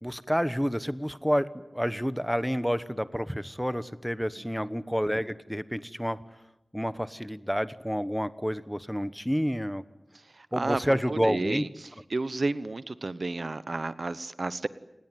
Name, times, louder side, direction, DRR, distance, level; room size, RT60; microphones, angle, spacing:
voice 1, 0.0-6.2 6.7-9.8 10.5-11.6, equal, ahead, 14 dB, 1.1 m, -29 dB
voice 2, 10.3-10.8 11.1-11.7 12.1-14.7, right 3 dB, 65° right, 15 dB, 1.0 m, -31 dB
29.5 x 19.0 x 9.3 m, 0.96 s
wide cardioid pair, 65°, 0 cm